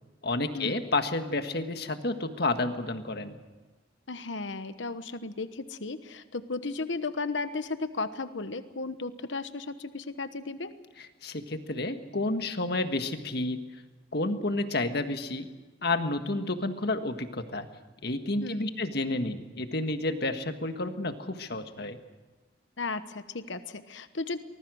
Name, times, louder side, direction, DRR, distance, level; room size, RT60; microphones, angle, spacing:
voice 1, 0.2-3.4 11.0-13.6 14.1-15.5 15.8-17.7 18.0-22.0, left 2 dB, 55° left, 7 dB, 1.7 m, -30 dB
voice 2, 4.1-10.7 18.4-18.6 22.8-24.4, left 3 dB, 75° left, 11 dB, 1.2 m, -35 dB
24.5 x 20.5 x 6.4 m, 1.3 s
head